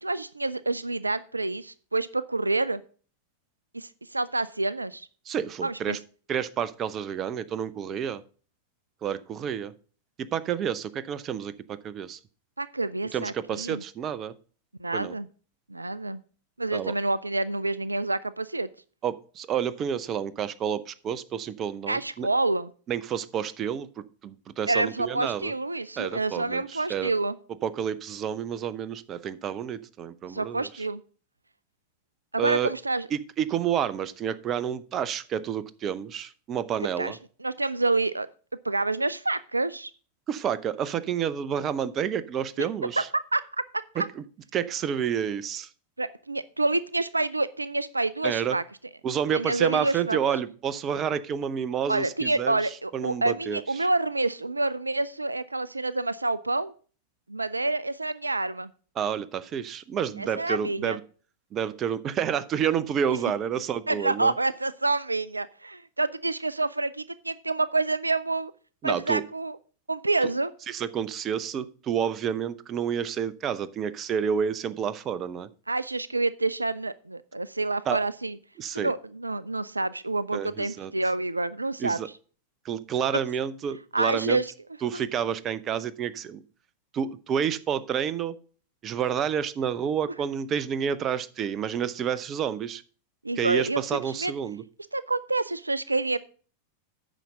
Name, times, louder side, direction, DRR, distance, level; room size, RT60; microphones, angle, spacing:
voice 1, 0.0-2.8 3.7-5.1 5.6-6.0 12.6-13.8 14.8-15.3 15.7-16.2 16.6-18.7 21.9-22.7 24.7-27.4 30.3-31.0 32.3-33.1 37.0-38.3 38.6-39.9 42.6-42.7 43.3-43.4 46.0-48.6 49.3-50.2 51.9-56.7 57.3-58.7 60.2-61.0 63.9-68.5 68.8-69.6 69.9-70.5 75.7-78.4 78.7-82.0 83.9-84.5 84.9-85.0 93.2-94.3 94.9-96.2, right 2 dB, 80° right, 17 dB, 0.3 m, -28 dB
voice 2, 5.3-6.0 6.3-8.2 9.0-9.7 10.2-12.2 13.1-14.3 14.9-15.1 16.7-16.9 19.0-22.3 22.9-25.5 26.0-27.1 27.6-30.7 32.4-32.7 33.1-37.2 40.3-43.1 44.0-44.1 44.5-45.7 48.2-48.6 49.0-52.6 52.9-53.9 59.0-61.0 61.5-64.3 68.8-69.2 70.7-75.5 77.9-78.0 78.6-78.9 80.3-80.9 81.8-82.1 82.6-84.4 84.8-86.4 86.9-88.3 88.8-92.8 93.4-94.6, right 8 dB, 30° right, 16 dB, 0.6 m, -29 dB
9.1 x 5.9 x 5.2 m, 0.40 s
figure-of-eight pair, 90°, 0 cm